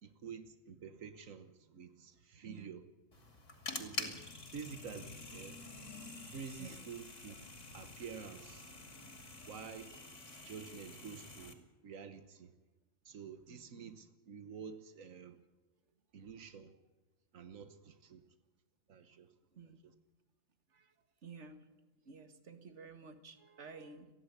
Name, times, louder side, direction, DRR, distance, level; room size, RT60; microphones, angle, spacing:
voice 1, 0.0-2.8 3.7-4.2 4.5-5.6 6.3-7.4 7.7-8.7 9.5-9.9 10.4-11.6 11.8-12.5 13.0-15.4 16.1-16.7 17.3-18.2 18.9-19.3 19.6-19.9, right 6 dB, 85° right, 10 dB, 1.5 m, -49 dB
voice 2, 2.4-2.7 6.6-6.8 13.5-13.9 19.5-19.8 20.7-20.9 21.2-21.7 22.1-24.1, right 4 dB, 60° right, 9 dB, 2.0 m, -52 dB
sound 1, 3.1-11.5, left 2 dB, 65° left, 3.1 m, -47 dB
30.0 x 11.0 x 8.2 m, 1.2 s
omnidirectional pair, 1.3 m